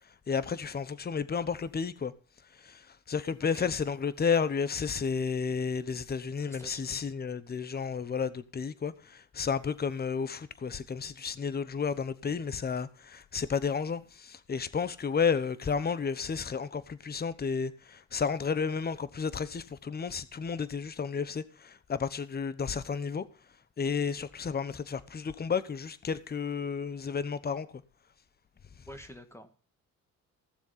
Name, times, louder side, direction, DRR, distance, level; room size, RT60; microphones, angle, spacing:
voice 1, 0.3-2.1 2.6-23.2 23.8-27.7, left 6 dB, 30° left, 1.0 m, -32 dB
voice 2, 6.5-7.2 28.9-29.5, equal, 10° left, 1.8 m, -48 dB
15.5 x 7.1 x 5.7 m
cardioid pair, 90°, 30 cm